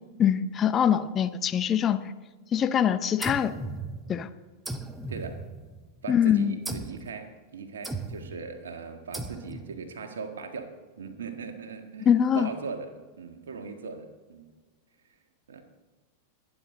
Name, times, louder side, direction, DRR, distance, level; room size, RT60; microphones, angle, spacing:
voice 1, 0.2-2.0 2.5-3.5 4.1-4.3 6.1-6.5 12.1-12.5, left 8 dB, 25° left, 11 dB, 0.7 m, -23 dB
sound 1, 3.2-4.3 4.6-5.9 6.6-7.1 7.8-8.4 9.1-9.8, right 2 dB, 10° right, 1.0 m, -37 dB
voice 2, 5.1-5.4 6.0-10.7 11.0-12.1 12.3-14.5 15.5-15.6, right 5 dB, 65° right, 6 dB, 1.7 m, -39 dB
22.5 x 9.8 x 3.9 m, 1.3 s
figure-of-eight pair, 90°, 0 cm